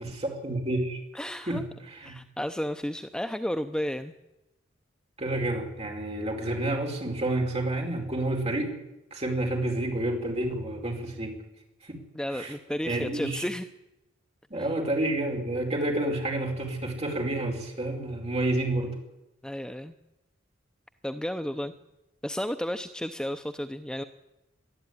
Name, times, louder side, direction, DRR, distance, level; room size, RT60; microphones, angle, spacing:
voice 1, 0.0-1.0 1.5-1.6 1.9-2.2 5.2-8.7 9.1-11.4 11.9-12.0 12.3-12.5 12.8-13.4 14.5-18.9, right 1 dB, 30° right, 1 dB, 4.9 m, -29 dB
voice 2, 1.1-1.6 2.0-4.1 12.1-13.7 19.4-19.9 21.0-21.7 22.2-24.0, equal, 5° left, 8 dB, 0.6 m, -32 dB
22.0 x 13.0 x 9.6 m, 0.94 s
head